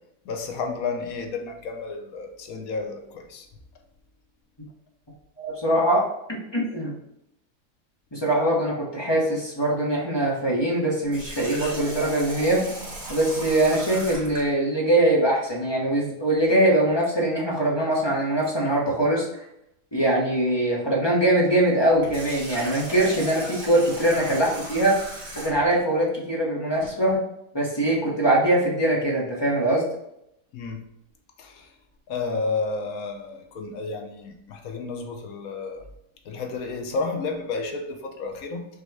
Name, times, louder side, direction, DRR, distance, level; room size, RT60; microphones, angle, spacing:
voice 1, 0.2-3.5 30.5-30.9 31.4-31.7 32.1-35.8 36.3-38.7, left 4 dB, 65° left, 3 dB, 1.1 m, -31 dB
voice 2, 5.4-6.1 6.5-7.0 8.1-12.6 13.1-19.3 19.9-25.0 25.4-27.2 27.5-29.8, right 1 dB, 20° left, -4 dB, 0.7 m, -22 dB
Water tap faucet, 11.1-14.5 21.9-25.7, right 1 dB, 55° right, 1.9 m, -37 dB
5.3 x 2.2 x 4.6 m, 0.81 s
omnidirectional pair, 1.8 m